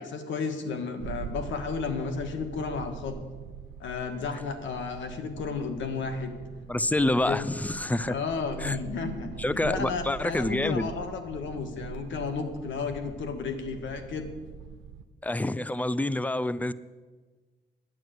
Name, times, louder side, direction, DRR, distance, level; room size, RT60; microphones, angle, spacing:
voice 1, 0.0-3.2 3.8-6.3 7.3-7.5 8.1-14.3, left 5 dB, 75° left, 7 dB, 1.7 m, -33 dB
sound 1, 1.0-15.0, right 8 dB, 80° right, 0.9 m, -43 dB
voice 2, 6.7-8.1 8.6-8.8 9.4-10.9 15.2-16.7, left 1 dB, 5° left, 17 dB, 0.5 m, -27 dB
11.0 x 9.0 x 8.1 m, 1.4 s
cardioid pair, 90°, 20 cm